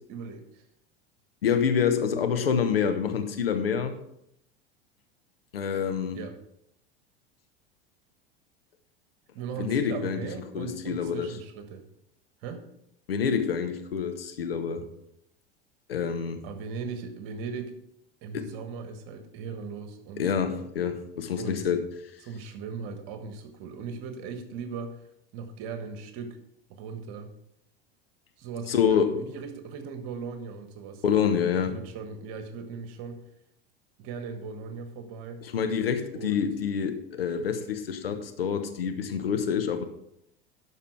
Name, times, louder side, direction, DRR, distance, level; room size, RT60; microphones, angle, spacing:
voice 1, 0.1-0.6 6.1-6.4 9.3-11.8 12.4-12.6 16.4-17.8 18.2-20.2 21.4-21.7 22.2-25.0 25.3-26.4 26.7-27.3 28.4-31.0 31.5-33.2 34.0-35.4 36.1-36.5, right 5 dB, 50° right, 8 dB, 1.4 m, -38 dB
voice 2, 1.4-4.0 5.5-6.2 9.6-10.2 10.5-11.3 13.1-14.9 15.9-16.4 18.3-18.5 20.2-21.8 28.7-29.2 31.0-31.8 35.4-39.8, left 7 dB, 70° left, 7 dB, 1.0 m, -27 dB
12.0 x 4.8 x 4.9 m, 0.78 s
figure-of-eight pair, 80°, 30 cm